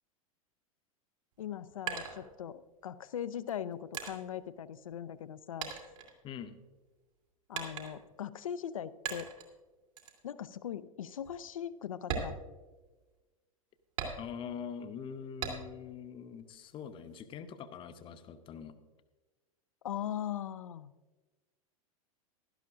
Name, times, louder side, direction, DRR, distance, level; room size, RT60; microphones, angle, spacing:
sound 1, 1.3-2.8 3.5-5.3 5.6-6.8 7.5-8.2 9.1-9.5 10.0-10.2 10.7-10.8 11.2-11.4 12.0-13.2 14.0-14.6 15.4-15.9 16.3-17.2, right 6 dB, 60° right, 2.4 m, -41 dB
voice 1, 1.4-5.7 7.5-9.3 10.2-12.4 19.8-20.9, left 9 dB, 65° left, 15 dB, 0.5 m, -40 dB
voice 2, 6.2-6.6 14.2-18.8, left 7 dB, 30° left, 10 dB, 0.8 m, -43 dB
16.0 x 12.0 x 2.5 m, 1.2 s
figure-of-eight pair, 90°, 18 cm